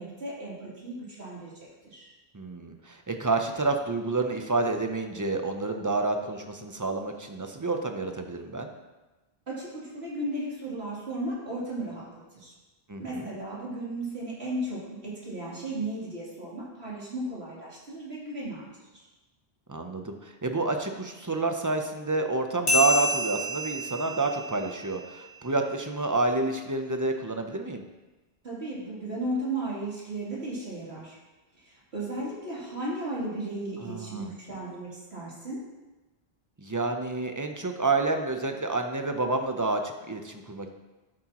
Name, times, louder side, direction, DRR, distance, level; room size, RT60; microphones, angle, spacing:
voice 1, 0.0-1.5 1.8-2.1 9.5-12.0 12.3-12.5 13.0-18.7 18.9-19.0 28.4-31.2 31.6-35.6, right 1 dB, 85° right, -7 dB, 3.4 m, -35 dB
voice 2, 2.3-8.7 12.9-13.3 19.7-27.8 33.8-34.3 36.6-40.7, right 3 dB, 20° right, 5 dB, 0.6 m, -29 dB
sound 1, 22.7-25.7, left 1 dB, 75° left, 2.5 m, -29 dB
12.5 x 7.7 x 3.0 m, 1.1 s
omnidirectional pair, 1.1 m